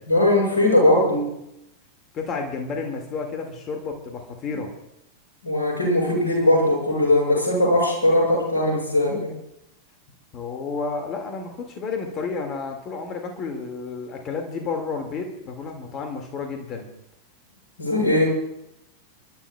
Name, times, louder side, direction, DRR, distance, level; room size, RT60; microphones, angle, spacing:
voice 1, 0.1-1.3 5.4-9.3 17.8-18.3, left 1 dB, 70° left, -2 dB, 6.3 m, -20 dB
voice 2, 2.1-4.7 10.3-16.9, left 4 dB, 30° left, 3 dB, 2.1 m, -31 dB
30.0 x 12.0 x 2.3 m, 0.82 s
figure-of-eight pair, 90°, 0 cm